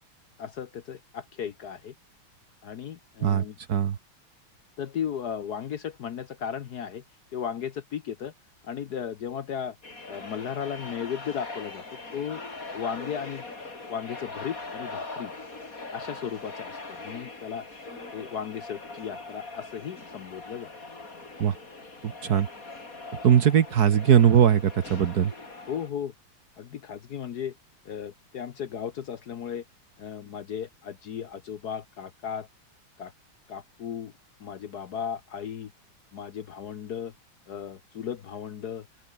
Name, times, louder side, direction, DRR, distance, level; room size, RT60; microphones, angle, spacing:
voice 1, 0.4-1.9 2.6-3.5 4.8-7.0 7.3-8.3 8.6-9.8 10.1-12.4 12.7-13.5 13.9-15.3 15.9-17.7 18.1-20.7 22.2-22.3 25.7-26.1 26.6-27.5 27.8-29.6 30.0-32.5 33.0-33.1 33.5-34.1 34.4-35.7 36.1-37.1 37.5-38.9, left 8 dB, 55° left, 1.3 m, -35 dB
voice 2, 3.2-4.0 21.4-21.5 22.0-22.5 23.2-25.3, right 8 dB, 50° right, 1.4 m, -20 dB
sound 1, 9.8-25.9, left 3 dB, 40° left, 4.4 m, -41 dB
open air
omnidirectional pair, 2.3 m